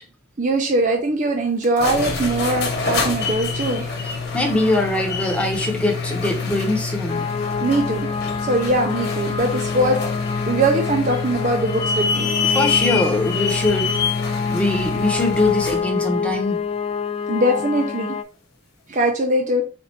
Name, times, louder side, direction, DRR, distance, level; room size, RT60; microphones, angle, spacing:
voice 1, 0.4-4.0 7.6-8.1 8.4-12.3 17.3-18.2 18.9-19.6, right 1 dB, 40° right, 0.5 m, -21 dB
sound 1, 1.6-15.9, left 5 dB, 50° left, 1.1 m, -26 dB
voice 2, 4.0-7.2 12.4-14.0 14.4-16.6, left 2 dB, 5° left, 0.9 m, -22 dB
sound 2, 7.1-18.2, left 5 dB, 30° left, 0.3 m, -27 dB
4.3 x 2.6 x 4.3 m
head